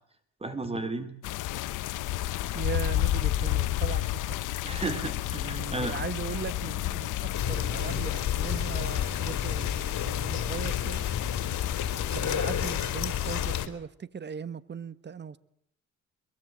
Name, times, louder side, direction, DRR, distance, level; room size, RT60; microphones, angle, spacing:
voice 1, 0.4-1.1 4.6-6.0, right 2 dB, 20° right, 4.0 m, -33 dB
sound 1, 1.2-13.7, left 14 dB, 85° left, 1.0 m, -32 dB
voice 2, 2.5-4.4 5.3-11.0 12.1-15.4, right 7 dB, 35° right, 1.4 m, -38 dB
sound 2, 7.3-13.7, left 9 dB, 65° left, 3.9 m, -31 dB
23.0 x 23.0 x 7.6 m
cardioid pair, 90°, 30 cm